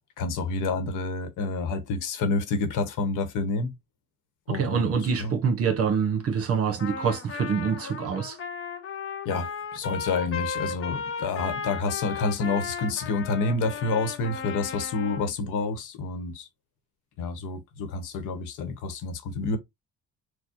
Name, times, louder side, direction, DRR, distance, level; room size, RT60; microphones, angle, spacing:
voice 1, 0.2-3.7 4.5-5.3 9.2-16.5 17.2-19.6, left 3 dB, 85° left, 1.1 m, -29 dB
voice 2, 4.5-8.4, right 6 dB, 50° right, 1.2 m, -25 dB
Trumpet, 6.8-15.3, left 5 dB, 45° left, 0.8 m, -35 dB
4.6 x 2.2 x 2.9 m
cardioid pair, 125°, 30 cm